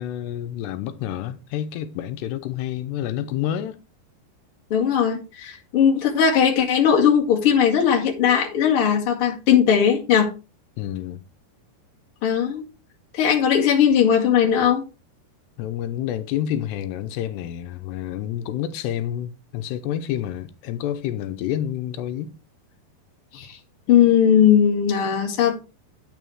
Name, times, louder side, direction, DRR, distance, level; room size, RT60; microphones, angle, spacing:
voice 1, 0.0-3.8 10.8-11.2 15.6-22.3, left 11 dB, 90° left, 2.8 m, -29 dB
voice 2, 4.7-10.3 12.2-12.6 13.1-14.8 23.3-23.6 23.9-25.6, left 8 dB, 40° left, 2.3 m, -18 dB
9.2 x 6.4 x 4.7 m
omnidirectional pair, 4.9 m